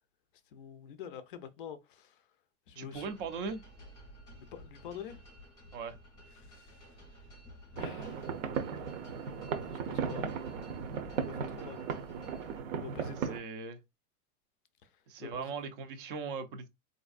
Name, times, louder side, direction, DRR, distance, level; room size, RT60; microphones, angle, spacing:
voice 1, 0.5-2.2 2.7-3.1 4.3-5.2 6.3-6.8 7.7-8.3 9.7-10.4 11.2-11.9 12.8-13.4 15.2-15.5, left 8 dB, 40° left, 0.4 m, -46 dB
voice 2, 2.8-3.6 5.7-6.0 13.3-13.8 15.1-16.7, right 5 dB, 40° right, 0.5 m, -39 dB
sound 1, 2.9-12.6, equal, 10° left, 0.7 m, -53 dB
sound 2, 7.8-13.4, right 6 dB, 60° right, 0.8 m, -36 dB
4.2 x 2.6 x 2.4 m
supercardioid pair, 165°, 45 cm